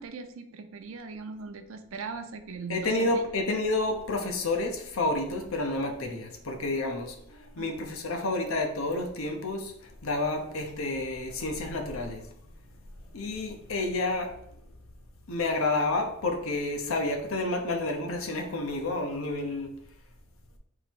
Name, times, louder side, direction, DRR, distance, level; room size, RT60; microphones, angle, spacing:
voice 1, 0.0-3.2 7.6-7.7, right 4 dB, 65° right, 7 dB, 0.5 m, -39 dB
voice 2, 2.7-12.3 13.1-14.6 15.3-19.7, left 2 dB, 70° left, 3 dB, 0.8 m, -30 dB
3.9 x 3.0 x 4.5 m, 0.76 s
head